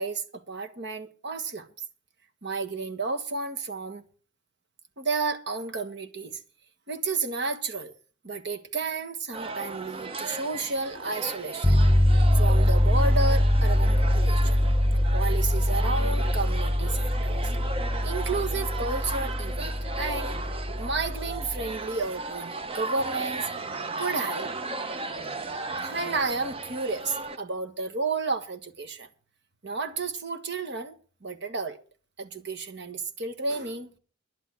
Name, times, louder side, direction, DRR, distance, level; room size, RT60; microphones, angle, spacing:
voice 1, 0.0-1.7 2.4-4.0 5.0-6.4 6.9-7.9 8.2-11.8 12.4-14.6 15.1-17.4 18.0-20.4 20.8-23.5 24.0-24.5 25.8-29.1 29.6-30.9 31.2-31.8 32.2-33.9, right 3 dB, 55° right, 1.5 m, -32 dB
sound 1, 9.3-27.4, right 3 dB, 25° right, 0.8 m, -36 dB
sound 2, 11.6-21.8, left 1 dB, 5° right, 1.3 m, -23 dB
11.0 x 11.0 x 6.1 m
head